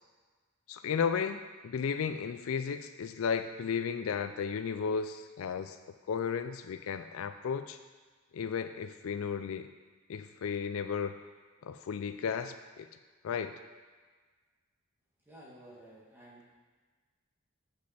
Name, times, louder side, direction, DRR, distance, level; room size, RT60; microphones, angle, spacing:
voice 1, 0.7-5.8 6.1-7.8 8.3-9.7 10.1-11.2 11.6-12.9 13.2-13.6, left 6 dB, 75° left, 10 dB, 0.4 m, -34 dB
voice 2, 15.2-16.5, right 1 dB, 10° right, -7 dB, 1.9 m, -53 dB
7.6 x 6.4 x 4.2 m, 1.4 s
head